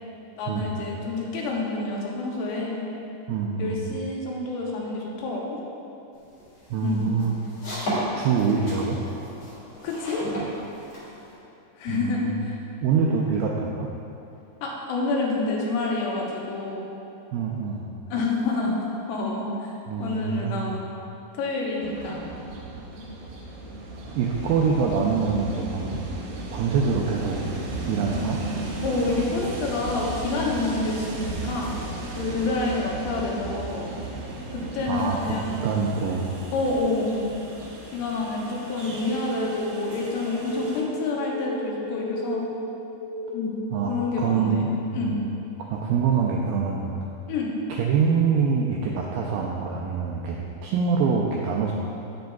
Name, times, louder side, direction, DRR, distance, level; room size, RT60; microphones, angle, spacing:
voice 1, 0.4-2.9 3.6-5.6 6.8-7.1 9.8-10.3 11.8-12.6 14.6-16.9 18.1-18.8 19.1-19.7 20.0-20.8 21.3-22.2 28.8-31.7 32.2-33.9 34.5-35.5 36.5-37.2 37.9-42.4 43.3-43.6 43.9-44.7 44.9-45.1 47.3-47.5, left 3 dB, 85° left, -2 dB, 3.1 m, -28 dB
voice 2, 3.3-3.8 6.7-7.3 8.2-9.0 11.9-12.4 12.8-13.9 17.3-17.8 19.9-20.7 24.2-26.0 26.5-27.4 27.9-28.4 34.9-36.3 43.7-45.3 45.7-47.0 47.7-51.7, right 5 dB, 90° right, -2 dB, 2.0 m, -25 dB
sound 1, 6.2-11.4, right 1 dB, 50° left, 2.3 m, -34 dB
Train, 21.8-40.8, right 2 dB, 70° right, 2.2 m, -35 dB
sound 2, 38.8-43.7, equal, 65° left, 2.3 m, -34 dB
9.2 x 7.7 x 2.3 m, 2.8 s
omnidirectional pair, 4.6 m